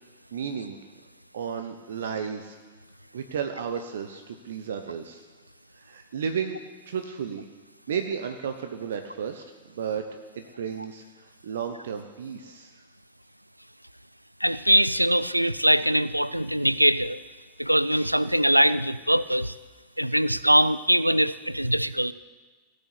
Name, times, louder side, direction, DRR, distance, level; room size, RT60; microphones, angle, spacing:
voice 1, 0.3-0.8 1.3-2.6 3.1-5.2 5.8-7.4 7.9-11.0 11.4-12.7, right 7 dB, 60° right, 7 dB, 0.9 m, -33 dB
voice 2, 14.4-17.2 17.6-19.5 20.0-22.1, equal, 90° right, 17 dB, 0.4 m, -22 dB
17.5 x 6.6 x 8.3 m, 1.3 s
figure-of-eight pair, 90°, 0 cm